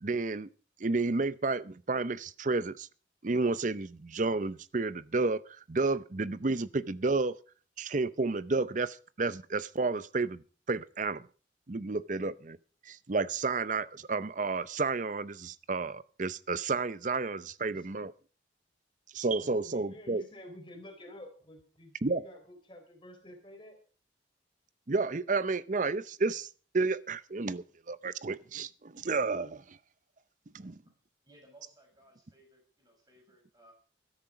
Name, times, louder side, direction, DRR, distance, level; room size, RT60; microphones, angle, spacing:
voice 1, 0.0-0.5 0.8-2.9 3.2-5.4 5.7-7.4 7.8-10.4 10.7-11.2 11.7-12.6 12.9-18.1 19.1-20.2 22.0-22.2 24.9-26.5 26.7-29.8 30.5-30.8, right 3 dB, 40° right, 0.6 m, -31 dB
voice 2, 19.4-23.8, left 1 dB, 25° left, 4.0 m, -50 dB
voice 3, 31.2-33.7, right 1 dB, 20° right, 6.2 m, -60 dB
13.5 x 13.0 x 5.0 m
head